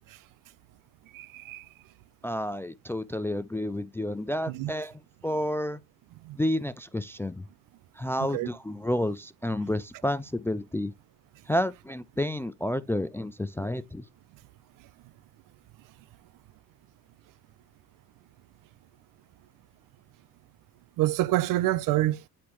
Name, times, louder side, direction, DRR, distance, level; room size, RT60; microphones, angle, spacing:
voice 1, 1.1-1.6 4.5-4.7 6.3-6.4 8.3-8.5 21.0-22.2, right 16 dB, 50° right, 0.6 m, -26 dB
voice 2, 2.2-4.9 5.2-5.8 6.4-7.4 8.0-10.9 11.5-14.0, left 1 dB, 5° left, 0.4 m, -30 dB
9.6 x 4.2 x 3.1 m
hypercardioid pair, 70°, 42 cm